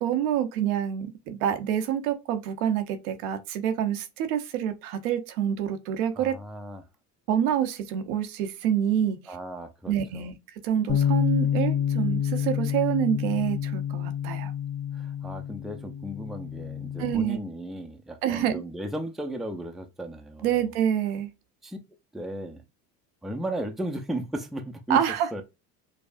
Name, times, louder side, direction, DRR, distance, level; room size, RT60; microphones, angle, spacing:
voice 1, 0.0-6.3 7.3-9.2 9.9-10.3 10.6-14.5 17.0-17.4 18.2-18.6 20.4-21.3 24.9-25.3, right 9 dB, 85° right, 0.9 m, -27 dB
voice 2, 6.2-6.9 9.3-10.3 14.9-20.7 21.6-21.8 22.1-22.6 23.2-25.0 25.3-25.4, right 1 dB, ahead, 0.5 m, -35 dB
Bass guitar, 10.9-17.1, left 9 dB, 30° left, 1.3 m, -28 dB
5.1 x 2.0 x 2.5 m
supercardioid pair, 95°, 42 cm